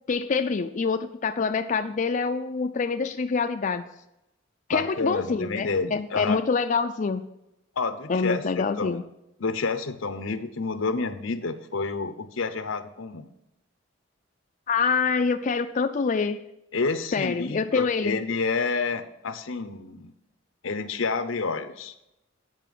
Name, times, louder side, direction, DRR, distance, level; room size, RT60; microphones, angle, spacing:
voice 1, 0.1-3.8 4.7-7.3 8.1-9.0 14.7-16.4 17.1-18.2, left 5 dB, 40° left, 7 dB, 0.4 m, -26 dB
voice 2, 4.7-6.4 7.8-9.0 9.4-13.3 16.7-20.1 20.6-21.9, left 4 dB, 85° left, 10 dB, 0.9 m, -29 dB
9.0 x 5.4 x 7.5 m, 0.87 s
head